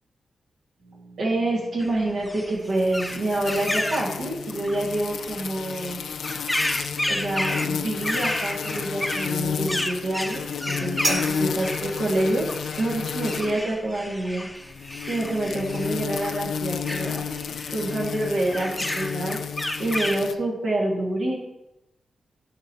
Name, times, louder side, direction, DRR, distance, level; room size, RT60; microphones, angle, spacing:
voice 1, 0.8-6.1 7.1-12.5 12.8-14.5 15.1-17.4 17.7-19.4 19.8-21.3, right 1 dB, 80° right, -4 dB, 1.7 m, -27 dB
sound 1, 1.8-20.2, left 1 dB, 10° left, 0.6 m, -32 dB
sound 2, 2.8-13.6 14.7-20.3, left 7 dB, 85° left, 0.3 m, -32 dB
sound 3, 11.0-17.6, right 1 dB, 60° right, 2.5 m, -37 dB
9.8 x 5.3 x 2.8 m, 0.93 s
cardioid pair, 55°, 0 cm